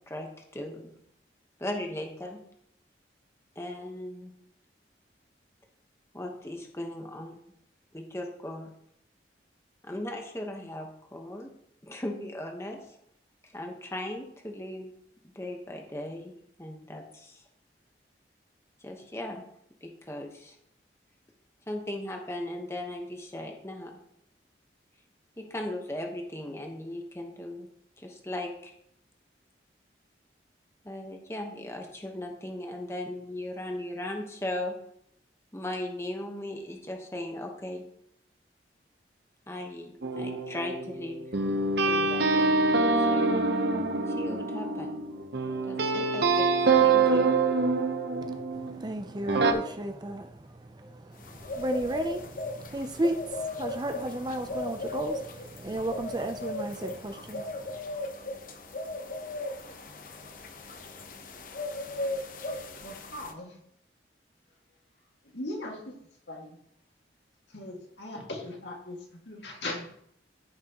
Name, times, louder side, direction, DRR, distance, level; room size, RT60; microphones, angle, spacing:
voice 1, 0.1-0.9 1.6-2.4 3.5-4.3 6.1-7.4 7.9-8.7 9.8-11.5 11.8-13.0 13.4-14.9 15.2-16.3 16.6-17.4 18.8-19.4 19.8-20.6 21.7-24.0 25.4-27.7 28.0-28.7 30.8-34.7 35.5-37.8 39.5-41.2 41.8-42.7 43.0-43.3 44.1-45.0 45.6-47.3, left 1 dB, 15° left, 2 dB, 1.1 m, -37 dB
sound 1, 40.0-48.8 49.3-49.5, right 3 dB, 65° right, 0.9 m, -25 dB
voice 2, 48.2-57.8, right 1 dB, 25° right, 7 dB, 0.5 m, -34 dB
sound 2, 51.2-63.3, left 2 dB, 50° left, 0.8 m, -37 dB
voice 3, 62.7-63.6 65.2-65.9 66.3-66.6 67.5-70.0, left 1 dB, 75° left, 0 dB, 2.0 m, -39 dB
14.5 x 6.0 x 3.0 m, 0.71 s
head